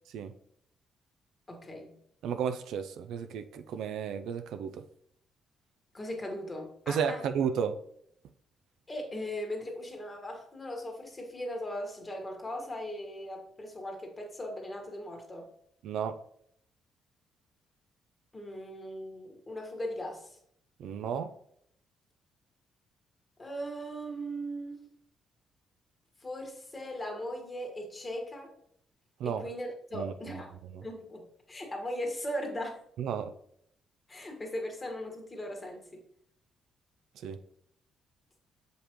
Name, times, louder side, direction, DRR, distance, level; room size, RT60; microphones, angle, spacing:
voice 1, 1.5-1.9 5.9-7.3 8.9-15.5 18.3-20.4 23.4-24.9 26.2-28.5 29.2-30.5 30.8-32.8 34.1-36.0, equal, 25° left, 2 dB, 1.6 m, -38 dB
voice 2, 2.2-4.8 6.9-7.8 15.8-16.2 20.8-21.3 29.2-29.5 29.9-30.4 30.7-30.8 33.0-33.3 37.2-37.4, right 7 dB, 80° right, 9 dB, 0.4 m, -33 dB
6.6 x 5.1 x 3.0 m, 0.69 s
cardioid pair, 90°, 0 cm